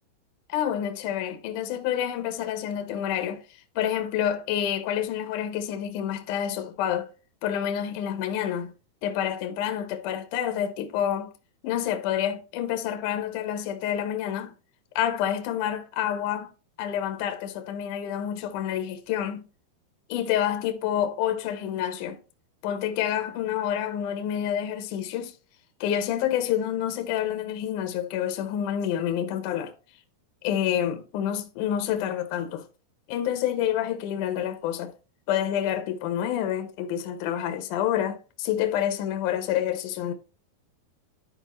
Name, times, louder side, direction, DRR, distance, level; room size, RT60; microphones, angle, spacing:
voice 1, 0.5-3.4 3.8-7.1 7.4-8.7 9.0-11.3 11.6-14.5 15.0-16.5 16.8-19.4 20.1-22.2 22.6-25.3 25.8-29.7 30.4-32.7 33.1-34.9 35.3-40.1, left 10 dB, 70° left, 2.0 m, -28 dB
12.5 x 4.8 x 3.1 m
omnidirectional pair, 4.6 m